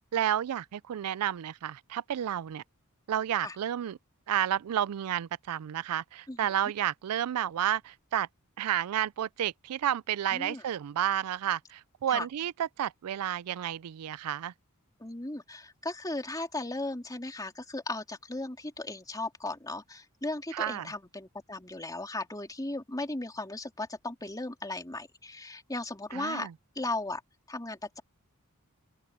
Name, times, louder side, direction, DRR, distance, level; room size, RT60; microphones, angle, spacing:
voice 1, 0.1-2.6 3.1-4.0 4.3-8.3 8.6-14.5 20.5-20.9 26.1-26.5, right 10 dB, 85° right, 0.4 m, -31 dB
voice 2, 10.3-10.6 12.1-12.3 15.0-26.5 26.7-27.2 27.5-28.0, left 2 dB, 15° left, 3.0 m, -36 dB
open air
head